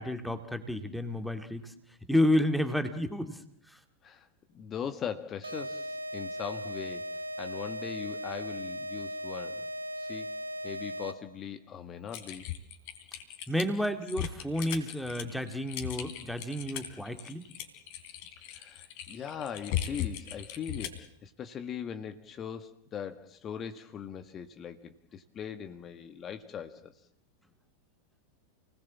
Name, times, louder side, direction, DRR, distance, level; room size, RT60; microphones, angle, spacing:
voice 1, 0.0-1.7 2.1-3.4 3.7-3.8 13.5-17.5, left 1 dB, ahead, 7 dB, 2.2 m, -30 dB
voice 2, 4.5-9.6 10.0-10.3 10.6-12.4 18.5-21.0 21.2-26.9, left 8 dB, 25° left, 8 dB, 1.8 m, -40 dB
sound 1, 5.4-11.4, equal, 80° right, 1.3 m, -38 dB
Typing, 12.1-21.0, left 11 dB, 45° left, 3.5 m, -38 dB
29.5 x 20.5 x 7.3 m, 0.73 s
figure-of-eight pair, 90°, 0 cm